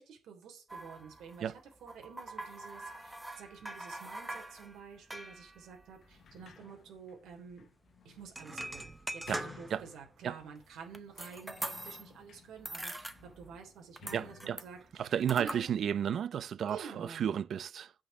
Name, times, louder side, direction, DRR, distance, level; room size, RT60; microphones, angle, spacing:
voice 1, 0.0-1.5 1.8-7.7 8.0-15.7 16.7-17.3, right 6 dB, 85° right, 3.4 m, -50 dB
sound 1, 0.7-6.7 7.0-7.1 7.3-7.5 8.2-9.9 10.4-12.2 12.5-13.7 14.0-15.6, right 1 dB, 5° right, 0.8 m, -43 dB
Sliding door, 6.0-10.5 11.1-16.0, left 7 dB, 50° left, 1.2 m, -57 dB
voice 2, 14.1-14.6 15.0-17.9, right 8 dB, 50° right, 0.5 m, -33 dB
8.7 x 5.3 x 7.8 m
cardioid pair, 175°, 0 cm